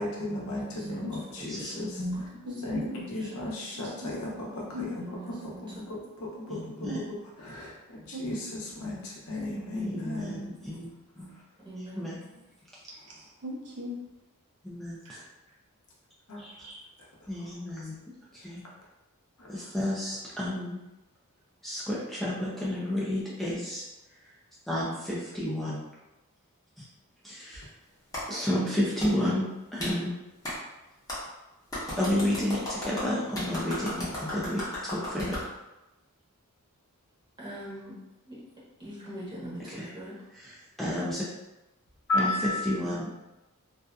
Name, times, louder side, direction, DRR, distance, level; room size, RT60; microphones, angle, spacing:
voice 1, 0.0-2.3 2.6-7.2 7.4-7.7 8.2-10.5 11.2-11.3 16.3-16.4 19.4-19.5 42.1-42.8, left 2 dB, 70° left, -3 dB, 0.7 m, -34 dB
voice 2, 0.6-1.1 1.4-2.0 5.1-5.6 9.0-9.1 11.6-12.1 37.4-37.9 38.3-38.4 38.8-40.1, right 1 dB, 20° right, -8 dB, 0.9 m, -42 dB
voice 3, 1.4-1.7 6.5-7.0 9.7-10.9 11.2-11.3 11.8-12.2 14.6-15.2 16.4-16.5 17.3-18.0 18.3-18.6 19.5-20.8 21.6-23.9 24.7-25.8 26.8-26.9 27.2-27.7 28.3-30.1 32.0-35.4 39.7-39.9 40.3-41.3 42.1-43.2, left 1 dB, ahead, -7 dB, 0.3 m, -31 dB
voice 4, 2.4-3.0 3.8-4.1 4.7-4.9 6.8-7.0 8.1-8.2 12.0-12.4 12.9-14.0 15.0-15.2 16.4-16.8, equal, 85° right, -4 dB, 0.7 m, -40 dB
Clapping, 28.1-28.2 29.0-29.1 29.8-29.9 30.4-30.6 31.1-31.2 31.7-35.5, left 1 dB, 15° left, 0.8 m, -35 dB
2.6 x 2.3 x 2.2 m, 0.98 s
head